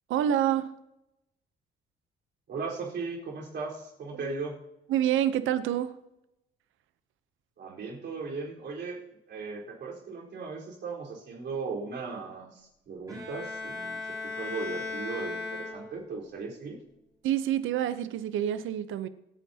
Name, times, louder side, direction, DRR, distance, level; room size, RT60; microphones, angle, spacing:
voice 1, 0.1-0.7 4.9-5.9 17.2-19.1, right 11 dB, 80° right, 0.8 m, -27 dB
voice 2, 2.5-4.6 7.6-9.0 9.3-16.8, right 4 dB, 65° right, 4.4 m, -37 dB
Bowed string instrument, 13.1-16.2, left 3 dB, 15° right, 5.7 m, -37 dB
27.5 x 9.3 x 2.9 m
cardioid pair, 90°, 20 cm